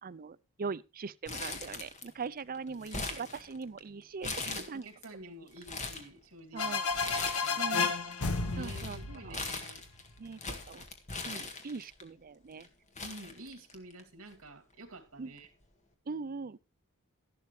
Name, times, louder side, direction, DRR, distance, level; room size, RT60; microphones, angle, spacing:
voice 1, 0.0-4.3 4.7-4.9 6.5-6.9 7.6-7.9 8.6-9.0 9.2-9.4 10.2-10.8 11.2-12.7 15.2-15.3 16.1-16.6, right 4 dB, 40° right, 0.5 m, -41 dB
Crumpling crinkling, 1.3-2.3 2.5-3.8 4.2-5.1 5.5-6.1 6.9-7.7 8.0-12.0 12.6-12.7 13.0-14.0 14.3-14.4 15.4-15.6, left 3 dB, 35° left, 1.8 m, -40 dB
voice 2, 2.7-3.3 4.2-6.8 7.1-7.8 8.5-9.8 13.0-15.5, right 2 dB, 70° right, 2.8 m, -50 dB
sound 1, 6.6-10.2, left 4 dB, 75° left, 1.3 m, -32 dB
13.0 x 12.0 x 3.3 m
head